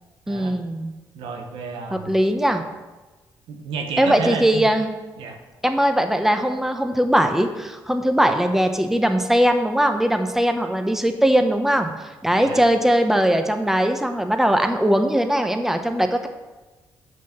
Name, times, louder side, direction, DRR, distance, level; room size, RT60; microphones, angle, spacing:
voice 1, 0.3-0.9 1.9-2.6 4.0-4.9 5.6-11.9 12.2-16.3, equal, 5° right, 6 dB, 1.0 m, -20 dB
voice 2, 1.1-2.2 3.5-4.7 5.2-5.4 12.3-12.6, right 5 dB, 85° right, 4 dB, 1.0 m, -31 dB
6.2 x 6.1 x 5.8 m, 1.2 s
supercardioid pair, 55°, 9 cm